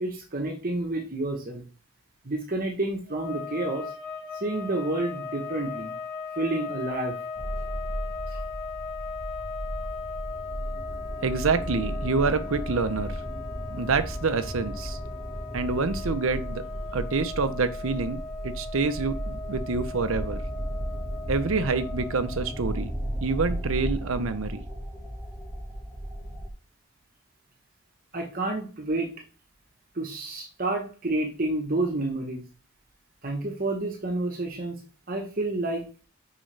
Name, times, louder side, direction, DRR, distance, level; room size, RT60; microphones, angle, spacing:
voice 1, 0.0-1.6 2.2-3.9 4.3-5.9 6.4-7.1 8.3-8.4 28.1-29.1 29.9-32.4 33.2-34.8 35.1-35.8, right 2 dB, 40° right, 3 dB, 1.1 m, -29 dB
sound 1, 3.1-22.7, left 4 dB, 45° left, 1.3 m, -38 dB
sound 2, 7.4-26.5, right 1 dB, ahead, 1.3 m, -35 dB
voice 2, 11.2-13.2 13.7-15.0 15.5-16.6 16.9-20.4 21.3-22.9 23.2-24.6, right 4 dB, 70° right, 11 dB, 0.7 m, -27 dB
6.3 x 4.9 x 3.3 m, 0.37 s
head